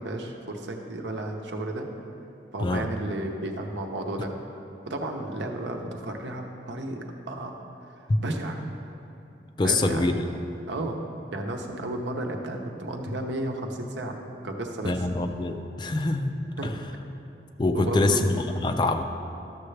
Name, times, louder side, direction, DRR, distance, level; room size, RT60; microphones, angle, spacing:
voice 1, 0.0-1.9 2.5-4.3 4.9-7.6 8.2-8.6 9.6-10.1 10.7-11.0 11.3-14.2 14.4-15.0 16.6-16.7 17.7-18.3, right 1 dB, 90° right, 2 dB, 0.9 m, -33 dB
voice 2, 2.6-2.9 8.1-8.2 9.6-10.2 14.8-16.3 16.6-16.7 17.6-19.0, left 2 dB, 25° left, 7 dB, 0.3 m, -25 dB
12.5 x 6.7 x 3.3 m, 2.9 s
head